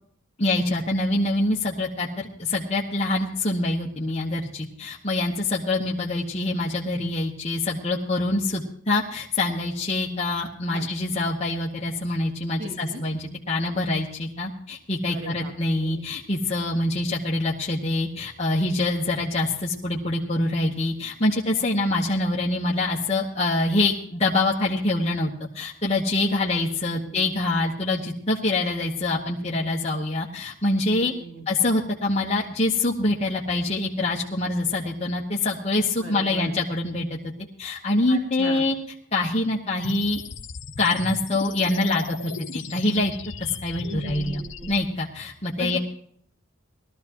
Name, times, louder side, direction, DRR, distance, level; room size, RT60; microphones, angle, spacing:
voice 1, 0.4-31.1 31.5-37.2 37.6-38.7 39.1-40.2 40.8-43.1 43.4-44.4 44.7-45.8, left 2 dB, 30° left, -3 dB, 1.2 m, -25 dB
voice 2, 12.6-13.0 15.1-16.0 26.3-27.2 30.9-31.5 36.0-36.5 38.1-38.6 43.8-44.7 45.6-45.8, right 1 dB, 75° right, 1 dB, 2.3 m, -38 dB
sound 1, 39.8-44.8, left 4 dB, 65° left, 0.9 m, -37 dB
20.0 x 13.0 x 3.0 m, 0.64 s
head